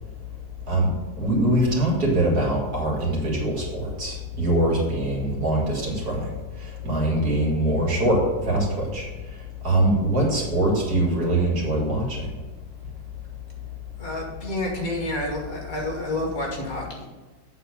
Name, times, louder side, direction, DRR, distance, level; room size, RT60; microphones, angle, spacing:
voice 1, 0.7-6.3 6.8-8.2 8.4-8.7 8.9-9.1 9.6-12.2, right 1 dB, 55° right, -3 dB, 2.7 m, -23 dB
voice 2, 14.0-17.1, left 1 dB, 50° left, 0 dB, 1.9 m, -29 dB
8.6 x 3.9 x 6.9 m, 1.3 s
omnidirectional pair, 2.0 m